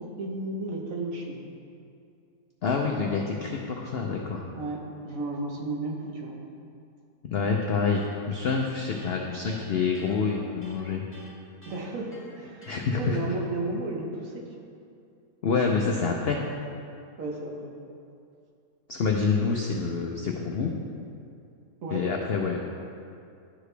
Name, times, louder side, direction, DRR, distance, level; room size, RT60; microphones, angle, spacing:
voice 1, 0.0-1.4 4.5-6.4 11.7-14.4 17.2-17.7 21.8-22.1, right 2 dB, 60° right, -1 dB, 1.3 m, -33 dB
voice 2, 2.6-4.5 7.2-11.0 12.7-13.2 15.4-16.4 18.9-20.7 21.9-22.6, left 5 dB, 80° left, 0 dB, 0.5 m, -27 dB
Electric guitar, 7.6-12.9, left 1 dB, 10° left, 1.1 m, -51 dB
12.5 x 4.8 x 3.3 m, 2.5 s
omnidirectional pair, 1.7 m